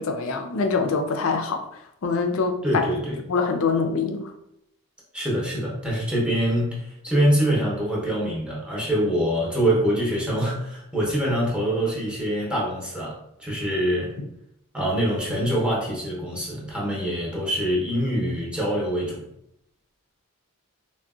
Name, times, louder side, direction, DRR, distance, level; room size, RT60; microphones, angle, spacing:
voice 1, 0.0-1.6 2.0-2.8 3.3-4.3, left 4 dB, 65° left, 6 dB, 0.4 m, -24 dB
voice 2, 2.6-3.2 5.1-14.1 14.7-19.2, equal, 5° right, -5 dB, 0.7 m, -24 dB
3.6 x 2.1 x 2.3 m, 0.78 s
head